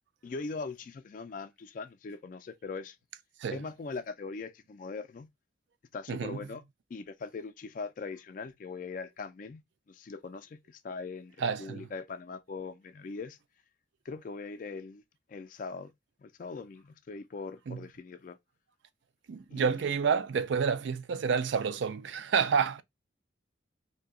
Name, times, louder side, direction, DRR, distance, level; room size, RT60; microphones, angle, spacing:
voice 1, 0.2-3.0 3.5-5.3 5.9-6.6 6.9-9.6 9.9-13.4 14.1-15.0 15.3-15.9 16.2-18.4 19.5-19.6, left 4 dB, 45° left, 0.3 m, -41 dB
voice 2, 6.1-6.4 11.4-11.9 17.7-17.9 19.3-22.8, right 6 dB, 70° right, 0.4 m, -29 dB
2.7 x 2.2 x 3.6 m
head